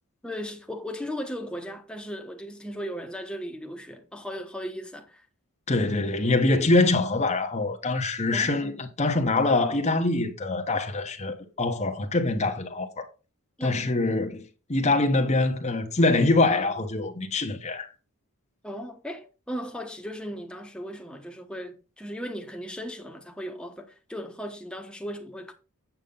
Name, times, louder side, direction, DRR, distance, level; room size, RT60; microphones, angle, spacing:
voice 1, 0.2-5.3 8.3-8.8 13.6-13.8 18.6-25.5, equal, 5° left, 1.1 m, -37 dB
voice 2, 5.7-13.1 13.6-14.4 14.7-17.9, left 2 dB, 30° left, 1.1 m, -24 dB
8.1 x 7.0 x 3.9 m
head